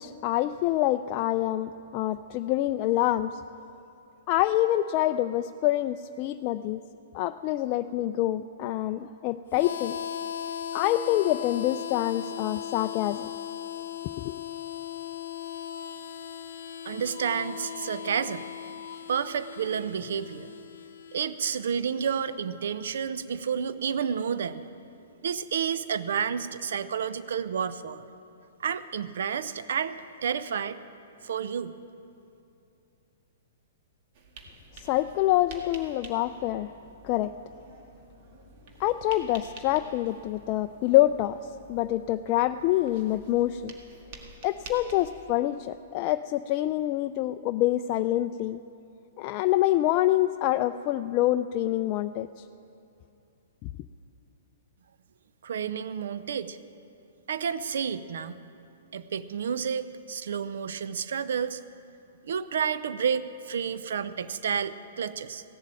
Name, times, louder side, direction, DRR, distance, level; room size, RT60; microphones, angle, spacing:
voice 1, 0.0-3.4 4.3-6.8 7.1-9.9 10.7-13.3 14.2-14.3 34.7-36.7 37.0-37.3 38.8-41.4 41.7-43.7 44.4-48.6 49.2-52.4 53.6-53.7, left 14 dB, 40° left, 9 dB, 0.3 m, -26 dB
Harmonica, 9.5-22.2, left 9 dB, 70° left, 0.7 m, -38 dB
voice 2, 16.8-18.4 19.1-20.5 21.1-24.6 25.2-28.0 28.6-30.8 31.2-31.8 55.4-56.6 57.3-58.3 58.9-61.6 62.2-65.4, right 7 dB, 70° right, 14 dB, 0.6 m, -30 dB
sound 1, 34.1-45.4, right 3 dB, 50° right, 1.7 m, -49 dB
15.5 x 7.4 x 8.9 m, 2.7 s
hypercardioid pair, 125°, 0 cm